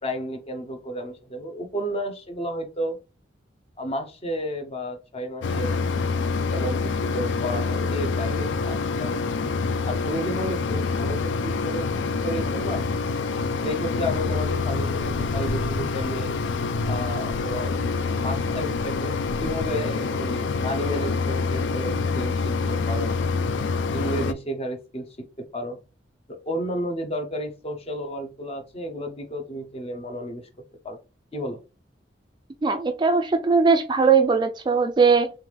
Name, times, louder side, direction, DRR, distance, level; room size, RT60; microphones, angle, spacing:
voice 1, 0.0-3.0 3.8-5.8 6.5-9.5 9.9-12.8 13.6-16.3 16.9-17.8 18.2-22.3 22.9-23.2 23.9-25.8 26.3-30.5 30.8-31.0 31.3-31.6, equal, 35° left, 0.8 m, -32 dB
Mechanisms, 5.4-24.3, left 4 dB, 75° left, 0.4 m, -26 dB
voice 2, 32.6-35.3, right 5 dB, 25° right, 0.3 m, -19 dB
3.4 x 3.1 x 3.3 m
head